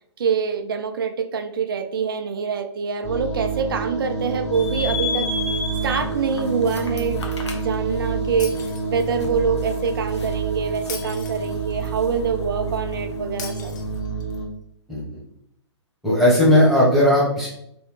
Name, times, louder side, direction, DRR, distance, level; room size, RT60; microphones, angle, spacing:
voice 1, 0.2-5.3 5.8-7.2 7.5-8.6 8.9-13.7, right 5 dB, 50° right, 7 dB, 0.4 m, -25 dB
sound 1, 3.0-14.5, right 4 dB, 15° left, 1.3 m, -28 dB
sound 2, 4.5-14.0, left 4 dB, 65° left, 0.9 m, -35 dB
Shatter, 8.4-9.4 10.9-11.9 13.4-14.4, left 7 dB, 40° left, 0.5 m, -38 dB
voice 2, 14.9-15.2 16.0-17.5, left 1 dB, ahead, -7 dB, 1.2 m, -17 dB
3.5 x 3.1 x 3.1 m, 0.74 s
figure-of-eight pair, 125°, 15 cm